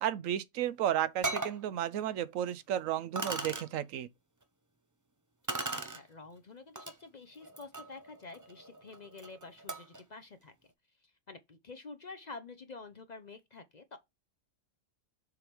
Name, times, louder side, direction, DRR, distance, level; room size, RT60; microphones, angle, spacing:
voice 1, 0.0-4.1, right 11 dB, 90° right, 1.0 m, -33 dB
sound 1, 0.6-0.7 1.2-1.6 2.5-2.6 3.2-3.7 5.5-6.0 6.8-6.9 7.4-10.0, right 3 dB, 20° right, 0.5 m, -38 dB
voice 2, 5.7-10.5 11.0-14.0, left 3 dB, 45° left, 0.6 m, -49 dB
7.1 x 3.5 x 4.6 m
omnidirectional pair, 1.3 m